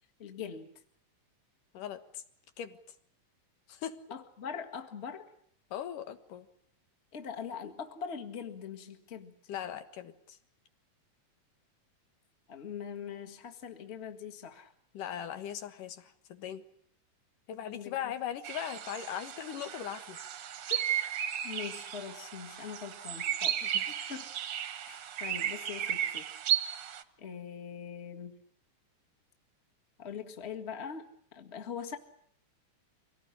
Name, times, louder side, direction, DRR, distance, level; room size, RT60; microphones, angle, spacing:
voice 1, 0.2-0.7 4.1-5.3 7.1-9.3 12.5-14.7 17.7-18.1 21.4-24.3 24.8-26.3 27.2-28.4 30.0-31.1 31.3-32.0, left 7 dB, 25° left, 5 dB, 1.5 m, -42 dB
voice 2, 1.7-2.2 2.6-2.8 3.7-4.0 5.7-6.5 9.5-10.4 14.9-16.6 17.5-20.2 20.7-20.9 23.6-24.0, left 10 dB, 90° left, 9 dB, 3.1 m, -39 dB
sound 1, 18.4-27.0, right 10 dB, 60° right, 1.6 m, -34 dB
24.5 x 18.0 x 9.9 m, 0.67 s
omnidirectional pair, 3.6 m